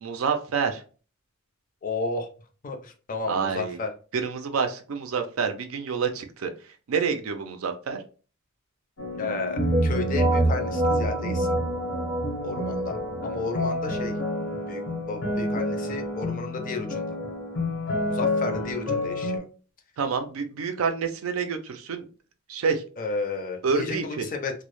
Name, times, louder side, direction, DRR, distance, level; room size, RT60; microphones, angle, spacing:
voice 1, 0.0-0.8 3.3-3.8 4.1-6.5 6.9-8.0 20.0-22.0 22.5-22.8 23.6-24.3, right 5 dB, 80° right, 7 dB, 0.4 m, -28 dB
voice 2, 1.8-2.3 2.6-3.9 9.2-11.5 12.4-14.1 14.7-14.8 15.1-17.2 18.0-19.4 23.0-24.5, left 3 dB, 40° left, 4 dB, 0.4 m, -32 dB
sound 1, 9.0-19.4, left 2 dB, 85° left, 0.9 m, -30 dB
sound 2, 9.6-19.2, right 1 dB, 25° right, 0.5 m, -29 dB
2.0 x 2.0 x 2.9 m, 0.37 s
head